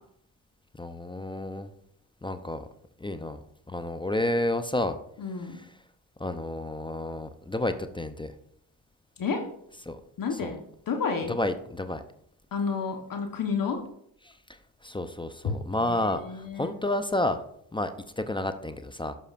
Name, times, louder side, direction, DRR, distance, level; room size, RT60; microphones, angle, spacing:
voice 1, 0.7-1.7 2.2-2.7 3.0-3.4 3.7-5.0 6.2-8.3 9.9-10.0 10.4-10.5 11.3-12.0 14.3-17.4 17.7-19.1, left 1 dB, 10° left, 10 dB, 0.6 m, -30 dB
voice 2, 5.2-5.6 9.2-9.5 10.2-10.6 10.9-11.3 12.5-13.8 15.4-16.7, left 5 dB, 50° left, 4 dB, 1.2 m, -31 dB
11.5 x 5.6 x 2.5 m, 0.69 s
hypercardioid pair, 50°, 44 cm